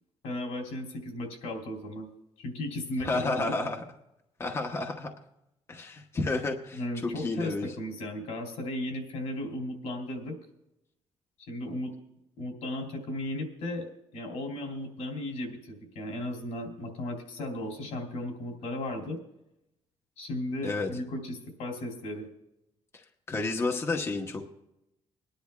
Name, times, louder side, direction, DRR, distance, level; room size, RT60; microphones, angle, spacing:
voice 1, 0.2-2.1 2.4-3.5 6.7-10.4 11.4-11.9 12.4-19.2 20.2-22.3, left 1 dB, 85° left, 1 dB, 3.1 m, -35 dB
voice 2, 3.0-3.8 4.4-5.1 5.7-7.7 20.6-20.9 22.9-24.4, left 3 dB, 25° left, 2 dB, 1.0 m, -31 dB
25.5 x 10.5 x 2.3 m, 0.86 s
cardioid pair, 140°, 11 cm